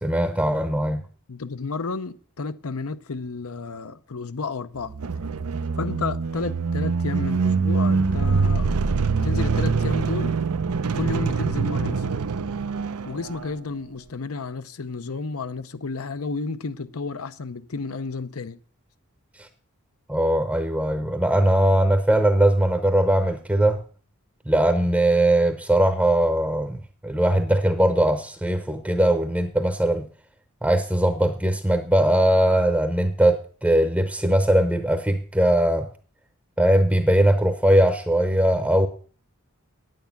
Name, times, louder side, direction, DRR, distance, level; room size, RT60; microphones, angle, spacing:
voice 1, 0.0-1.0 20.1-23.8 24.5-30.1 30.6-35.9 36.6-38.9, right 1 dB, 5° right, 0.7 m, -20 dB
voice 2, 1.3-4.9 5.8-8.7 9.2-10.4 10.9-12.1 13.0-18.6, left 4 dB, 80° left, 0.8 m, -31 dB
sound 1, 4.8-13.6, right 4 dB, 85° right, 0.6 m, -24 dB
9.3 x 9.2 x 5.9 m
head